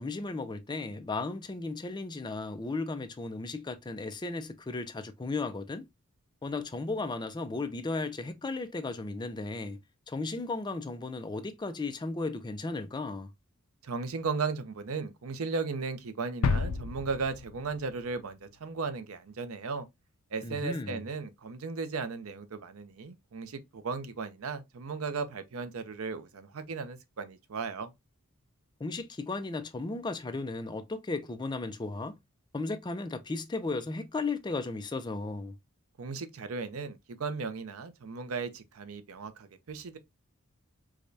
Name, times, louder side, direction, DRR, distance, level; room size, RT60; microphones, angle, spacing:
voice 1, 0.0-5.9 6.4-9.8 10.1-13.3 20.4-21.0 28.8-32.2 32.5-35.5, left 3 dB, 20° left, 0.4 m, -35 dB
voice 2, 13.8-19.9 20.3-27.9 36.0-40.0, right 4 dB, 75° right, 0.6 m, -36 dB
sound 1, 16.4-18.3 18.6-18.7, left 5 dB, 90° left, 0.4 m, -31 dB
4.8 x 2.2 x 2.5 m
head